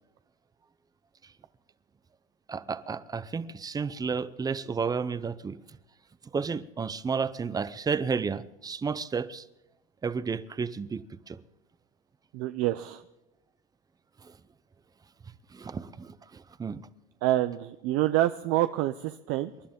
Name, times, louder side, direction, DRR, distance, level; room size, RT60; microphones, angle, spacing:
voice 1, 2.5-5.6 6.3-9.4 10.0-11.4 15.5-16.8, right 5 dB, 10° right, 0.6 m, -32 dB
voice 2, 12.3-13.0 17.2-19.5, right 15 dB, 50° right, 0.7 m, -27 dB
27.5 x 11.5 x 3.7 m
supercardioid pair, 125°, 30 cm